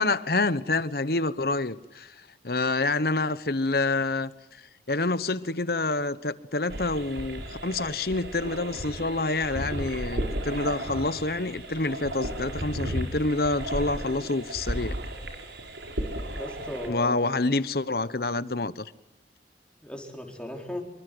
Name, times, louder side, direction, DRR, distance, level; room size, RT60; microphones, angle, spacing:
voice 1, 0.0-2.1 2.4-4.3 4.9-15.0 16.9-18.9, left 2 dB, 55° left, 1.2 m, -27 dB
sound 1, 6.7-16.9, right 1 dB, 80° right, 5.2 m, -34 dB
voice 2, 16.3-17.3 19.8-20.8, left 1 dB, 5° left, 4.6 m, -37 dB
26.5 x 24.0 x 8.0 m
head